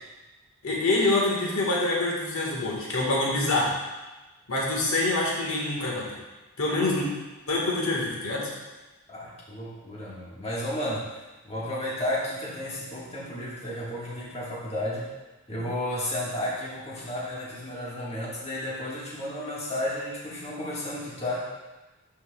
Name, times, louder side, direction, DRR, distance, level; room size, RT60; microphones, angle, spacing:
voice 1, 0.6-3.7 4.5-6.1 6.6-7.1 7.5-8.5, left 2 dB, 70° left, -3 dB, 1.4 m, -25 dB
voice 2, 9.1-11.1 11.4-15.1 15.5-21.4, left 1 dB, 30° left, -6 dB, 1.4 m, -32 dB
11.5 x 4.5 x 2.2 m, 1.1 s
head